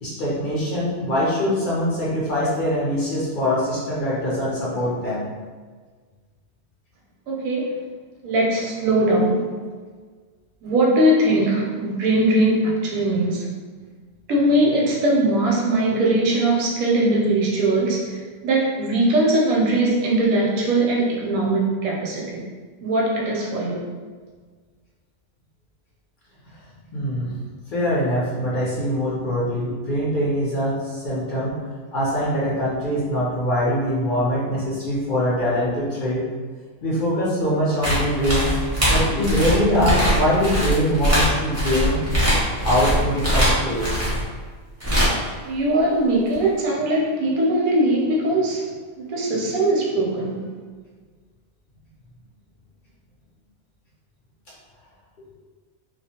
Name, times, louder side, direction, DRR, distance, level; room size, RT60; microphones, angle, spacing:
voice 1, 0.0-5.2 26.9-27.3 27.7-31.6 31.9-36.2 36.8-38.5 38.8-42.0 42.6-43.9, equal, 60° left, -7 dB, 0.5 m, -23 dB
voice 2, 7.3-7.8 8.2-9.5 10.6-13.5 14.3-22.4 22.8-23.8 45.4-48.7 49.0-50.5, right 1 dB, 80° right, -3 dB, 1.0 m, -20 dB
sound 1, 37.8-44.2 44.8-45.3 46.3-46.4, equal, 15° right, 0.5 m, -21 dB
2.4 x 2.0 x 2.7 m, 1.5 s
omnidirectional pair, 1.5 m